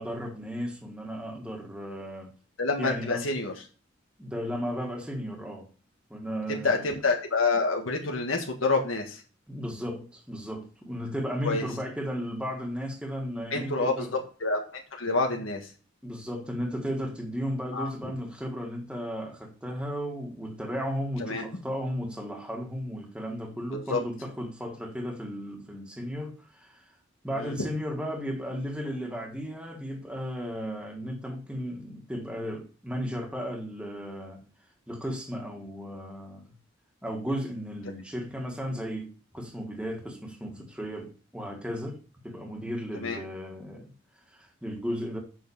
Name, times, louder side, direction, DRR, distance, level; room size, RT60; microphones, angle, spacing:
voice 1, 0.0-2.3 2.8-3.2 4.2-5.7 6.1-7.0 9.5-14.1 16.0-26.8 27.2-34.4 34.9-36.5 37.0-43.9 44.3-45.2, equal, 5° right, 1.7 m, -35 dB
voice 2, 2.6-3.5 6.5-9.2 11.4-11.6 13.5-14.1 14.4-15.7 17.7-18.1 21.2-21.5 23.7-24.0 27.4-27.7 43.0-43.2, left 3 dB, 85° left, 1.6 m, -28 dB
7.3 x 5.7 x 7.0 m
head